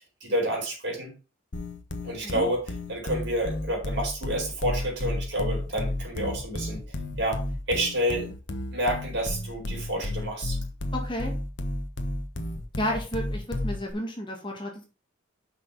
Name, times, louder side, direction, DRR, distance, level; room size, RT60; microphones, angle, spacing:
voice 1, 0.2-1.1 2.0-2.6 2.9-6.8 7.2-7.4 7.7-8.3 8.7-10.6, right 1 dB, 60° right, -1 dB, 4.3 m, -29 dB
sound 1, 1.5-13.9, left 1 dB, 60° left, 1.3 m, -32 dB
voice 2, 10.9-11.3 12.8-14.8, equal, 25° left, 1 dB, 2.0 m, -32 dB
6.3 x 5.8 x 5.8 m, 0.32 s
head